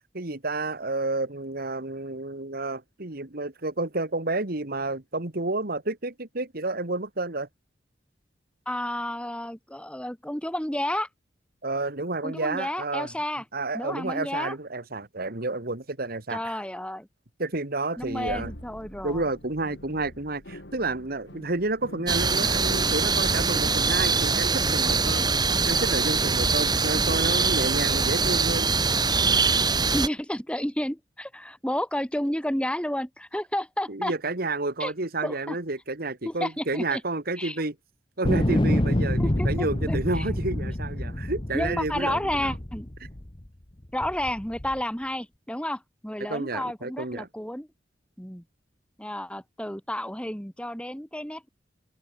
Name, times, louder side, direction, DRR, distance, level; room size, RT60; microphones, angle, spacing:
voice 1, 0.1-7.5 11.6-13.1 13.5-16.6 17.4-18.5 19.0-25.3 25.7-28.7 33.9-37.8 38.2-42.5 46.3-47.3, right 2 dB, 55° right, 2.2 m, -30 dB
voice 2, 8.7-11.1 12.2-13.4 13.7-14.6 16.3-17.1 18.0-19.2 29.9-34.1 34.8-34.9 35.2-35.6 36.3-37.0 37.4-37.6 39.2-40.3 41.5-42.9 43.9-47.7 48.2-48.4 49.0-51.5, left 1 dB, 5° left, 6.9 m, -31 dB
sound 1, 18.0-29.4, equal, 70° left, 7.5 m, -45 dB
sound 2, 22.1-30.1, right 4 dB, 25° right, 2.1 m, -23 dB
sound 3, 38.2-43.5 44.0-44.8, left 1 dB, 30° left, 1.2 m, -27 dB
open air
head